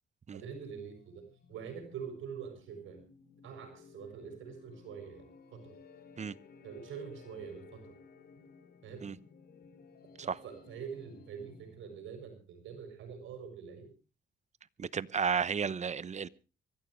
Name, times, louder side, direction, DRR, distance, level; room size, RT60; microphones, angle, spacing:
voice 1, 0.3-3.0 3.4-5.2 5.5-5.8 6.6-7.9 8.8-9.1 10.2-13.9, right 7 dB, 80° right, 6 dB, 6.7 m, -45 dB
sound 1, 0.8-12.2, left 5 dB, 50° left, 3.2 m, -57 dB
voice 2, 14.8-16.3, right 6 dB, 35° right, 19 dB, 0.9 m, -33 dB
24.0 x 14.5 x 3.2 m, 0.33 s
cardioid pair, 90°, 20 cm